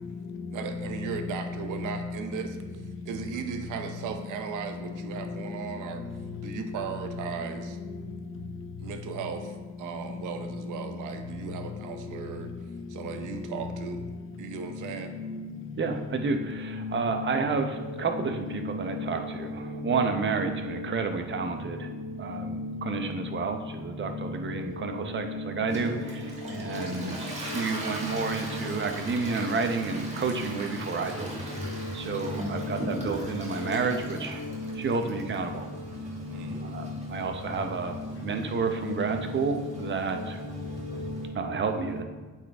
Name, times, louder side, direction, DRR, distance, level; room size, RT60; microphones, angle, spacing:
voice 1, 0.5-2.6 3.1-6.0 6.4-7.8 8.8-12.5 12.9-14.0 14.4-15.1 36.3-36.6, right 6 dB, 85° right, 6 dB, 0.8 m, -36 dB
voice 2, 15.8-21.9 22.2-26.2 26.5-31.3 31.9-34.4 34.8-35.7 36.6-38.0 38.2-40.4 41.4-42.0, right 4 dB, 40° right, 6 dB, 0.8 m, -30 dB
voice 3, 16.5-17.4 18.1-19.5 19.8-21.1 22.3-23.1 24.1-24.3 24.8-25.9 26.7-26.9 27.5-28.5 30.3-30.5 31.6-31.9 32.2-32.9 33.6-33.8 34.4-34.8 36.4-37.0 38.8-39.5 40.6-41.3 41.7-41.8, left 3 dB, 40° left, 6 dB, 0.7 m, -36 dB
Toilet flush, 25.7-41.3, right 1 dB, 20° right, 1.8 m, -39 dB
8.4 x 4.2 x 3.4 m, 1.4 s
cardioid pair, 90°, 30 cm